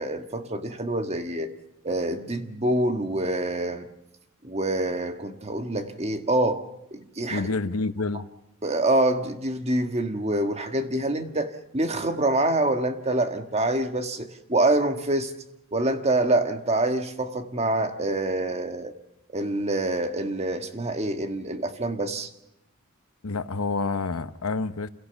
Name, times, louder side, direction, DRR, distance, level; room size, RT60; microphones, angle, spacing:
voice 1, 0.0-1.5 1.8-3.9 4.4-6.6 6.9-7.5 8.6-15.3 15.7-18.9 19.3-22.3, right 1 dB, 30° right, 1.6 m, -26 dB
voice 2, 7.3-8.3 23.2-24.9, left 3 dB, 80° left, 1.0 m, -28 dB
27.5 x 17.5 x 7.0 m
head